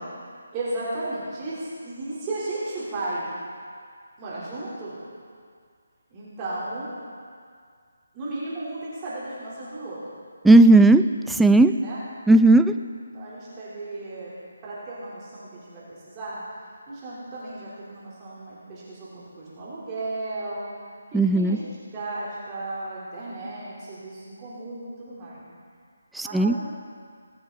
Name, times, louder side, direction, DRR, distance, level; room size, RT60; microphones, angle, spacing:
voice 1, 0.5-3.2 4.2-5.0 6.1-6.9 8.1-10.0 11.8-12.0 13.1-14.3 14.6-16.4 16.9-20.7 21.1-25.4 26.2-26.6, right 2 dB, 20° right, -9 dB, 3.5 m, -34 dB
voice 2, 10.4-11.7 12.3-12.7 21.1-21.6 26.2-26.5, right 2 dB, 5° right, 8 dB, 0.3 m, -15 dB
21.0 x 8.0 x 4.0 m, 2.1 s
figure-of-eight pair, 155°, 0 cm